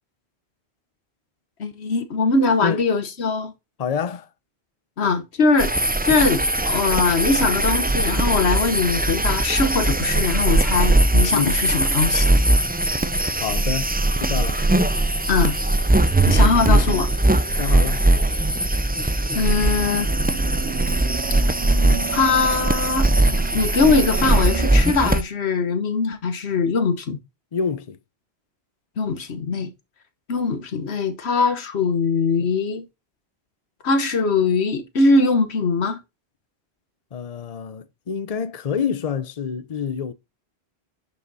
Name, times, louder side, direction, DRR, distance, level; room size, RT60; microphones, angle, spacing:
voice 1, 1.6-3.5 5.0-5.8 6.0-12.3 15.3-15.6 16.3-17.1 19.3-20.1 22.1-23.1 23.5-27.2 29.0-29.7 30.3-32.9 33.8-36.0, left 4 dB, 90° left, 1.4 m, -21 dB
voice 2, 3.8-4.3 11.3-11.6 13.4-14.6 17.6-18.1 27.5-28.0 37.1-40.1, left 7 dB, 40° left, 0.8 m, -27 dB
sound 1, 5.6-25.2, right 1 dB, 10° right, 0.4 m, -20 dB
sound 2, 12.8-19.9, right 2 dB, 65° right, 1.9 m, -44 dB
sound 3, 19.1-24.8, right 9 dB, 80° right, 1.0 m, -33 dB
10.5 x 5.7 x 4.1 m
omnidirectional pair, 1.1 m